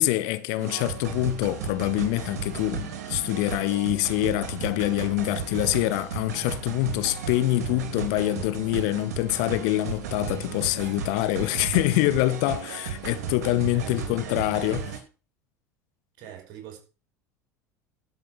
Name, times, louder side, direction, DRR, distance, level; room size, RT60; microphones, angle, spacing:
voice 1, 0.0-15.0, left 17 dB, 60° left, 1.1 m, -25 dB
sound 1, 0.6-15.0, right 7 dB, 70° right, 3.1 m, -35 dB
voice 2, 13.7-14.7 16.2-16.8, right 10 dB, 50° right, 5.9 m, -44 dB
12.5 x 6.6 x 8.3 m
figure-of-eight pair, 70°, 9 cm